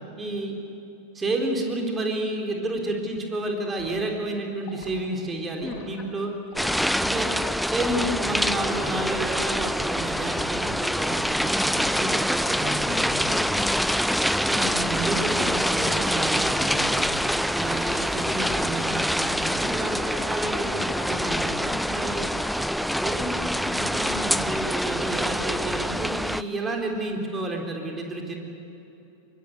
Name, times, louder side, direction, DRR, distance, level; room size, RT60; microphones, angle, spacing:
voice 1, 0.2-0.6 1.1-6.3 7.0-7.3 7.6-13.3 14.5-17.2 17.5-21.6 21.9-22.3 22.9-28.4, right 2 dB, 15° right, 2 dB, 3.8 m, -31 dB
Liquid, 3.8-4.0 4.6-5.0 5.6-5.9 6.5-6.8 7.4-7.7 8.4-8.7 9.4-9.6 10.3-10.7 11.1-11.4, left 4 dB, 40° left, 7.5 m, -46 dB
voice 2, 6.6-7.0 11.8-12.1 12.9-13.8 21.7-21.9, left 4 dB, 15° left, 3 dB, 1.6 m, -38 dB
sound 1, 6.6-26.4, equal, ahead, 0.5 m, -25 dB
24.0 x 23.0 x 8.0 m, 2.9 s
figure-of-eight pair, 90°, 0 cm